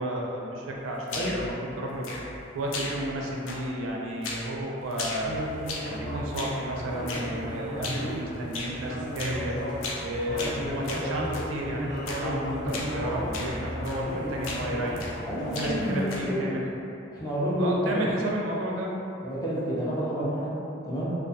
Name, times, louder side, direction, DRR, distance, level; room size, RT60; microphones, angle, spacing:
voice 1, 0.0-2.1 2.5-5.3 5.8-9.6 10.0-15.0 15.5-16.6 17.6-18.9, right 1 dB, 85° right, -2 dB, 0.4 m, -32 dB
sound 1, 1.1-1.5 2.0-2.4 2.7-3.2 3.5-3.9 4.2-4.5 4.9-6.0 6.3-6.6 7.1-7.3 7.8-8.1 8.5-8.8 9.2-9.4 9.8-10.1 10.4-11.5 12.1-12.3 12.7-12.9 13.3-13.6 13.8-14.1 14.4-15.2 15.5-16.4, left 2 dB, 85° left, 0.4 m, -36 dB
sound 2, 5.2-16.0, equal, 70° left, 1.0 m, -35 dB
voice 2, 15.3-16.5 17.1-18.1 19.2-21.2, equal, 20° left, -7 dB, 0.4 m, -29 dB
2.4 x 2.2 x 2.6 m, 2.8 s
head